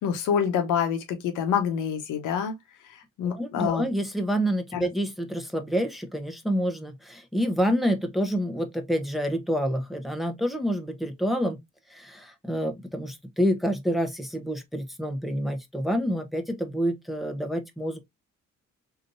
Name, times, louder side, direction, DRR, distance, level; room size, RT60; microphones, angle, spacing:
voice 1, 0.0-2.5 3.2-3.9 4.7-4.9, left 8 dB, 90° left, 0.9 m, -26 dB
voice 2, 3.2-11.6 11.9-18.0, equal, ahead, 0.7 m, -28 dB
3.3 x 2.8 x 2.5 m
cardioid pair, 90°, 30 cm